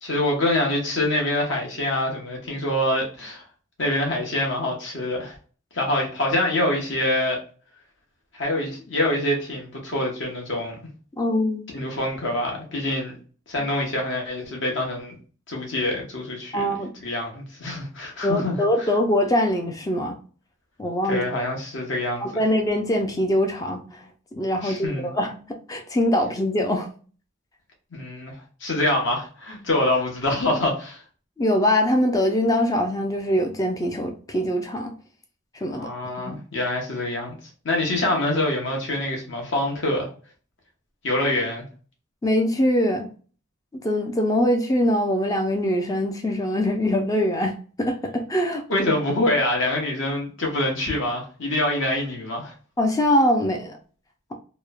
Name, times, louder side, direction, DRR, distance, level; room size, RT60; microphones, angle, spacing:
voice 1, 0.0-3.5 3.8-5.4 5.7-7.4 8.3-10.8 11.7-13.1 13.5-15.1 15.5-16.7 17.0-18.9 21.1-22.4 24.6-25.1 27.9-28.3 28.6-31.0 35.7-37.4 37.6-40.1 41.0-41.7 48.7-52.5, left 1 dB, 60° left, 0.9 m, -25 dB
voice 2, 11.2-11.8 16.5-16.9 18.2-20.2 20.8-21.2 22.2-24.0 24.3-26.9 31.4-34.9 35.6-35.9 36.2-36.4 42.2-43.1 43.8-48.6 52.8-53.8, left 1 dB, 15° left, 0.3 m, -23 dB
3.0 x 2.0 x 2.2 m
head